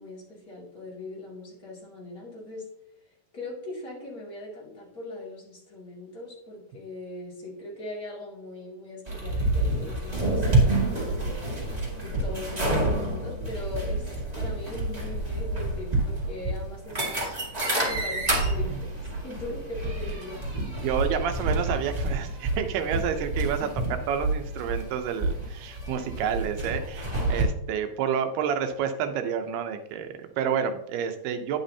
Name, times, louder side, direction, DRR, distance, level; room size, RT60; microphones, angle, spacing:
voice 1, 0.0-2.7 3.3-11.6 11.9-14.1 14.3-17.4 17.9-18.9 19.2-20.4 23.6-23.8, left 2 dB, 25° left, -5 dB, 2.4 m, -40 dB
sound 1, 9.1-27.4, right 2 dB, 20° right, 1.0 m, -28 dB
voice 2, 20.5-23.7 24.1-31.6, right 7 dB, 90° right, 7 dB, 2.9 m, -29 dB
9.7 x 8.5 x 2.8 m, 0.81 s
omnidirectional pair, 4.4 m